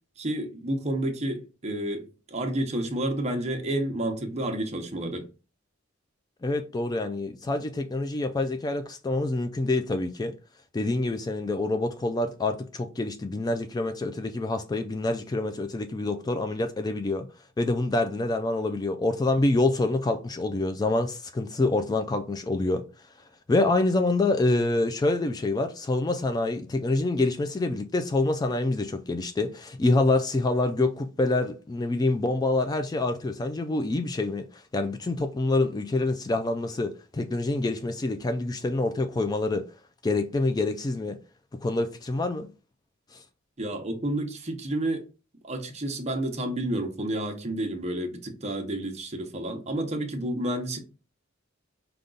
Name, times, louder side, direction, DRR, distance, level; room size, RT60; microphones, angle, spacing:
voice 1, 0.2-5.3 43.6-45.0 45.4-50.8, right 1 dB, 35° right, 0.8 m, -30 dB
voice 2, 6.4-10.3 10.7-17.3 17.6-22.9 23.5-39.7 40.0-41.2 41.6-42.5 43.1-43.2, left 2 dB, 20° left, 0.3 m, -26 dB
5.1 x 2.3 x 3.7 m
head